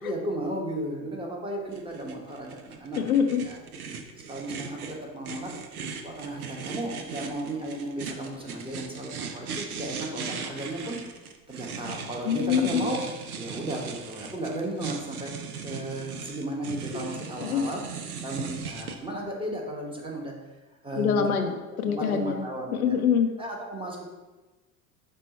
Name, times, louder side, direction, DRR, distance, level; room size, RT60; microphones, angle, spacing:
voice 1, 0.0-3.0 3.4-3.6 4.3-5.5 6.0-11.0 11.5-13.0 13.4-15.3 15.6-17.8 18.2-20.3 20.8-21.5 21.8-22.9 23.4-24.1, right 1 dB, 10° right, -1 dB, 1.0 m, -34 dB
sound 1, 1.7-19.0, right 5 dB, 90° right, 0.5 m, -38 dB
voice 2, 3.0-3.4 12.3-12.8 16.9-17.1 17.4-17.6 21.0-22.5 22.7-23.3, left 7 dB, 80° left, 6 dB, 0.6 m, -25 dB
5.5 x 2.3 x 4.1 m, 1.2 s
figure-of-eight pair, 75°, 43 cm